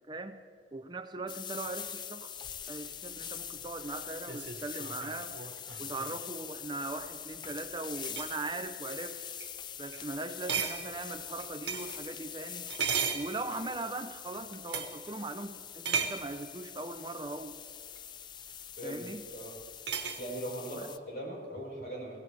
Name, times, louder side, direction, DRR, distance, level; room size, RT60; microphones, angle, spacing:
voice 1, 0.1-0.4 0.7-5.4 5.8-9.2 9.8-12.7 13.1-17.5 18.8-19.2 20.8-20.9, right 2 dB, 25° right, 8 dB, 0.6 m, -40 dB
sound 1, 1.3-21.0, left 9 dB, 25° left, 0.3 m, -44 dB
sound 2, 2.4-6.2 7.3-7.6 7.9-8.4 9.0-9.1 9.4-9.5 9.9-10.1 10.5-12.0 12.7-13.8 14.7-15.0 15.8-16.3 18.0-18.1 19.9-20.2, right 6 dB, 85° right, 1.3 m, -36 dB
voice 2, 20.2-22.2, right 1 dB, 55° left, -2 dB, 5.2 m, -40 dB
23.0 x 16.5 x 3.4 m, 2.2 s
head